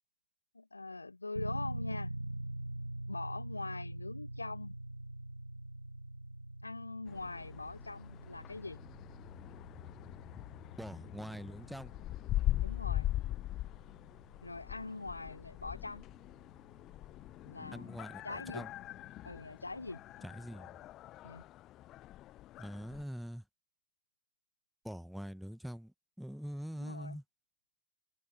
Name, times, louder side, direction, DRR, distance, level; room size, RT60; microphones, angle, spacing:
voice 1, 0.5-2.2 3.1-4.8 6.6-8.8 12.6-13.1 14.4-16.1 17.4-17.9 18.2-18.6 19.2-20.0 21.2-21.4 26.8-27.2, left 3 dB, 80° left, 0.7 m, -43 dB
sound 1, 1.4-18.1, right 1 dB, 85° right, 2.2 m, -45 dB
sound 2, 7.1-23.0, left 14 dB, 35° left, 0.5 m, -41 dB
voice 2, 10.8-11.9 17.7-18.7 20.2-20.8 22.6-23.4 24.8-27.2, equal, ahead, 1.7 m, -44 dB
figure-of-eight pair, 90°, 0 cm